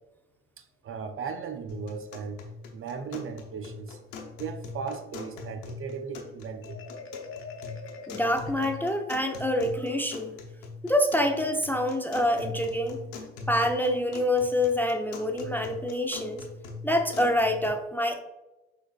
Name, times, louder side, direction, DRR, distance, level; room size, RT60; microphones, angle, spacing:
voice 1, 0.6-2.4 2.7-4.0 4.4-6.8, right 6 dB, 40° right, 0.5 m, -37 dB
sound 1, 1.7-17.7, left 3 dB, 75° left, 0.9 m, -42 dB
Marimba xylophone, 6.6-9.4, left 4 dB, 40° left, 0.9 m, -44 dB
voice 2, 8.1-10.4 10.8-13.0 13.5-16.4 16.8-18.2, left 1 dB, 5° left, 0.5 m, -26 dB
6.1 x 3.4 x 2.3 m
hypercardioid pair, 60°, 34 cm